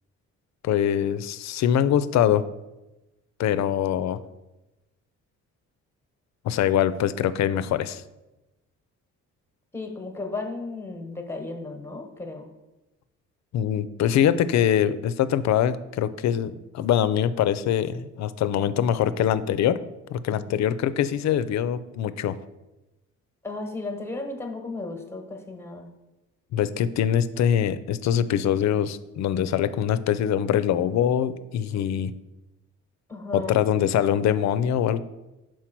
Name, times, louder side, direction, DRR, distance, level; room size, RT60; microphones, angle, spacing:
voice 1, 0.6-2.5 3.4-4.2 6.4-8.0 13.5-19.8 20.1-22.4 26.5-32.1 33.3-35.0, left 10 dB, 65° left, 14 dB, 0.5 m, -23 dB
voice 2, 9.7-12.5 20.3-20.4 23.4-25.9 33.1-33.6, left 3 dB, 10° left, 3 dB, 1.1 m, -34 dB
5.8 x 4.5 x 4.5 m, 1.0 s
cardioid pair, 90°, 30 cm